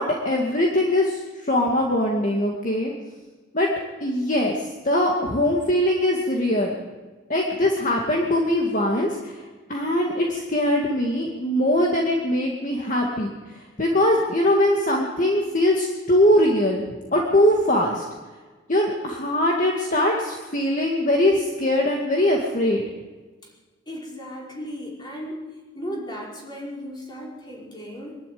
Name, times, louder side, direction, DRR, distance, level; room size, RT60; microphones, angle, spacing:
voice 1, 0.0-2.9 3.5-3.7 4.0-6.8 7.3-9.4 9.7-16.8 17.1-18.0 18.7-22.8, left 1 dB, 40° left, -1 dB, 2.2 m, -22 dB
voice 2, 23.9-25.4 25.8-28.2, equal, 20° left, -3 dB, 5.2 m, -35 dB
23.0 x 12.0 x 9.5 m, 1.3 s
head